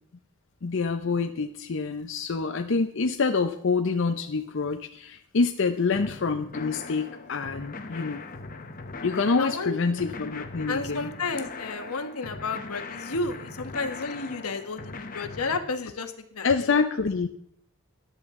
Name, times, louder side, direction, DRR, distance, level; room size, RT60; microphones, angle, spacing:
voice 1, 0.6-8.2 9.0-11.1 16.4-17.3, left 4 dB, 55° left, 6 dB, 0.6 m, -26 dB
sound 1, 5.9-15.6, left 3 dB, 40° left, 1.0 m, -40 dB
voice 2, 9.4-9.8 10.7-16.5 16.7-16.8, left 3 dB, 85° left, 8 dB, 1.2 m, -32 dB
13.5 x 11.0 x 3.7 m, 0.71 s
head